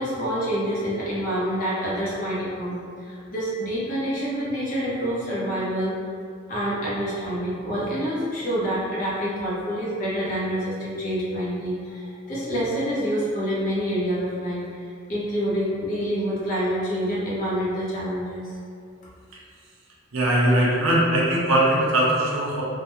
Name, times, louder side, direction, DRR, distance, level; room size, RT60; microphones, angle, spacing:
voice 1, 0.0-2.7 3.0-6.0 6.5-14.8 15.1-18.6, equal, 40° left, -8 dB, 0.6 m, -27 dB
voice 2, 20.1-22.6, right 1 dB, 80° right, -5 dB, 0.6 m, -20 dB
2.4 x 2.1 x 3.0 m, 2.2 s
head